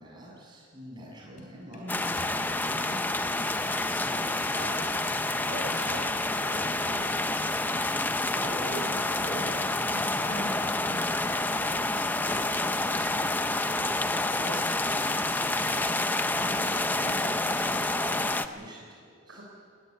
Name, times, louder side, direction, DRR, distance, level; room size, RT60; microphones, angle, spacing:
voice 1, 0.0-6.8 8.1-19.4, equal, 20° right, -3 dB, 6.8 m, -43 dB
sound 1, 1.3-3.1 3.6-5.1 5.6-7.1 7.3-15.8, left 1 dB, 40° left, 3.7 m, -52 dB
voice 2, 1.7-2.4 6.8-7.5 9.9-10.3 16.3-16.7 19.3-19.4, equal, 60° right, -1 dB, 5.3 m, -44 dB
sound 2, 1.9-18.5, left 2 dB, 10° left, 0.6 m, -28 dB
20.0 x 18.5 x 9.6 m, 2.2 s
head